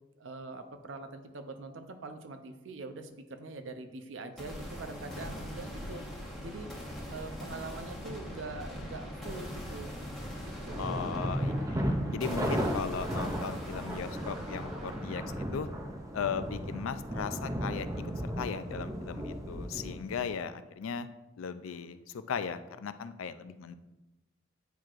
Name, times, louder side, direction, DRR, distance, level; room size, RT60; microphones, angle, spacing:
voice 1, 0.2-6.0 6.4-6.7 7.1-9.9 10.4-11.0, right 3 dB, 70° right, 7 dB, 0.6 m, -43 dB
sound 1, 4.4-18.3, equal, ahead, 1.2 m, -42 dB
sound 2, 10.7-20.3, equal, 15° right, 0.6 m, -35 dB
voice 2, 10.8-15.7 16.1-17.9 18.2-21.1 21.4-23.8, left 6 dB, 85° left, 12 dB, 0.4 m, -37 dB
9.1 x 4.6 x 2.5 m, 1.0 s
head